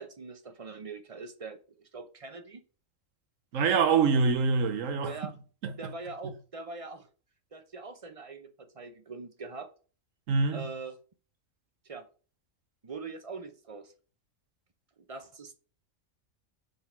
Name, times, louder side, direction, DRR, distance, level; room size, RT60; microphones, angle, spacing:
voice 1, 0.0-2.6 5.0-5.3 5.8-7.1 7.5-9.7 10.5-11.0 11.8-12.1 12.8-13.9 15.1-15.5, right 4 dB, 35° right, 0.6 m, -42 dB
voice 2, 3.5-5.1 5.6-5.7 10.3-10.6, right 5 dB, 90° right, 1.2 m, -25 dB
5.3 x 3.7 x 5.5 m
omnidirectional pair, 1.3 m